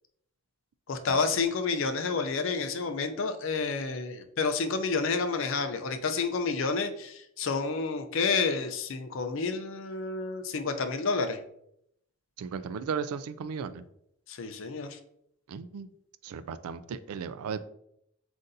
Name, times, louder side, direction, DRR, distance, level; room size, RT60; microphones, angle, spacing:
voice 1, 0.9-11.4 14.3-15.0, left 4 dB, 60° left, 7 dB, 0.5 m, -29 dB
voice 2, 12.4-13.8 15.5-15.9 16.2-17.6, right 6 dB, 80° right, 14 dB, 0.3 m, -35 dB
7.6 x 2.6 x 2.6 m, 0.75 s
head